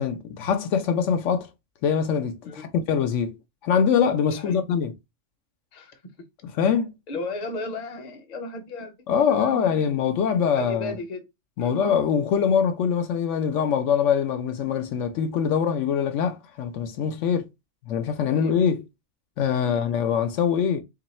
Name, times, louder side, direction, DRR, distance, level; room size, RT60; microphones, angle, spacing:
voice 1, 0.0-1.5 1.8-3.4 3.6-4.9 6.6-6.9 9.1-10.9 11.6-17.4 17.9-18.8 19.4-20.8, left 7 dB, 75° left, 0.9 m, -23 dB
voice 2, 7.1-9.9 10.5-11.2 11.6-11.8 17.2-17.3 18.3-18.5 19.6-19.9, left 2 dB, 40° left, 0.7 m, -35 dB
3.0 x 2.7 x 4.2 m
omnidirectional pair, 1.3 m